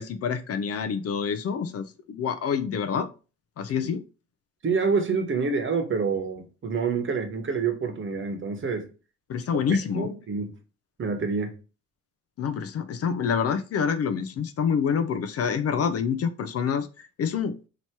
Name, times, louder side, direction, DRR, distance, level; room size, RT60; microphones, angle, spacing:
voice 1, 0.0-3.1 3.6-4.0 9.3-10.1 12.4-17.5, left 6 dB, 55° left, 11 dB, 0.5 m, -27 dB
voice 2, 4.6-8.9 9.5-9.6 9.9-10.5 11.0-11.5, right 5 dB, 40° right, 5 dB, 1.1 m, -27 dB
2.9 x 2.8 x 4.5 m, 0.33 s
cardioid pair, 90°, 30 cm